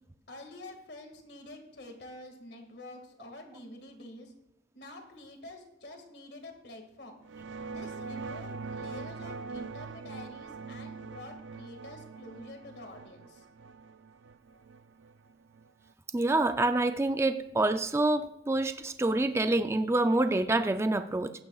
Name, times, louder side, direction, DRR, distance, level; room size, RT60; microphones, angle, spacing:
voice 1, 0.3-4.3 4.7-7.2 7.7-13.5, left 1 dB, 65° left, 4 dB, 2.0 m, -47 dB
sound 1, 7.2-15.9, right 4 dB, 80° right, 0.4 m, -43 dB
voice 2, 16.1-21.3, right 2 dB, 15° right, 8 dB, 0.4 m, -27 dB
16.0 x 11.5 x 2.4 m, 0.89 s
head